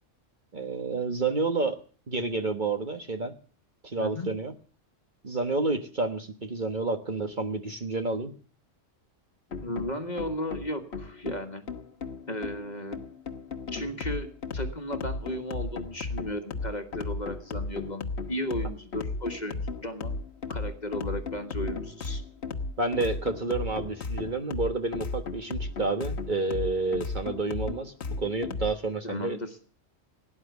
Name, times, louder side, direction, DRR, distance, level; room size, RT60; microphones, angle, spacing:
voice 1, 0.5-1.8 2.1-3.3 3.8-4.5 5.2-8.3 22.8-29.4, right 3 dB, 40° right, 7 dB, 1.4 m, -29 dB
voice 2, 4.0-4.3 9.6-11.6 12.3-13.0 13.7-20.1 20.5-22.2 29.0-29.5, left 1 dB, 35° left, 6 dB, 1.7 m, -35 dB
sound 1, 9.5-28.7, left 3 dB, 60° left, 1.4 m, -35 dB
17.5 x 9.9 x 8.1 m, 0.43 s
omnidirectional pair, 1.3 m